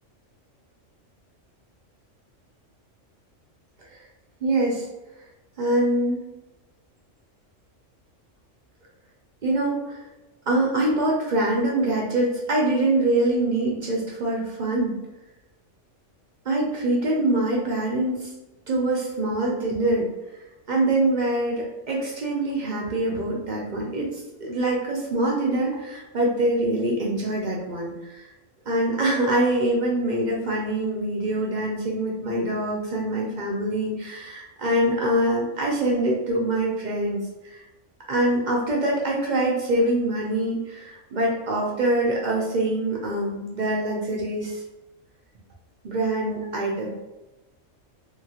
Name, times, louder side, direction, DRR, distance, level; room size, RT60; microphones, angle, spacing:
voice 1, 4.4-4.9 5.6-6.2 9.4-10.0 10.5-15.0 16.5-18.3 18.7-20.1 20.7-28.3 28.7-37.6 38.1-44.6 45.8-46.9, right 1 dB, 55° right, -2 dB, 0.5 m, -24 dB
2.9 x 2.8 x 2.7 m, 1.0 s
omnidirectional pair, 1.3 m